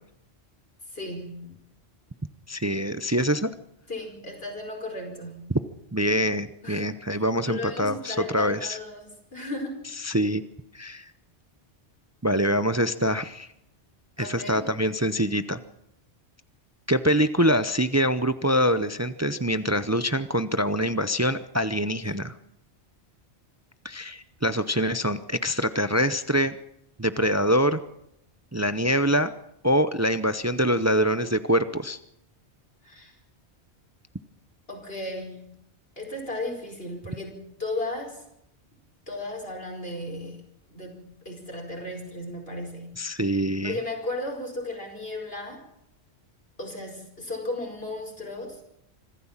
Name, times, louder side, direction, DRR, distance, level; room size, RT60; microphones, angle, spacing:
voice 1, 0.9-1.6 3.9-5.6 6.6-6.9 7.1-9.8 14.2-14.7 32.8-33.1 34.7-35.5 36.0-38.2 39.1-43.0 43.6-45.6 46.6-48.6, left 2 dB, 60° left, 1 dB, 5.2 m, -35 dB
voice 2, 2.5-3.5 5.9-8.8 10.0-10.4 10.7-11.1 12.2-13.5 14.2-15.6 16.9-22.3 23.8-26.6 27.0-27.8 28.5-29.3 29.6-32.0 43.0-43.8, equal, 20° right, 12 dB, 0.6 m, -24 dB
25.5 x 14.0 x 7.3 m, 0.79 s
omnidirectional pair, 1.1 m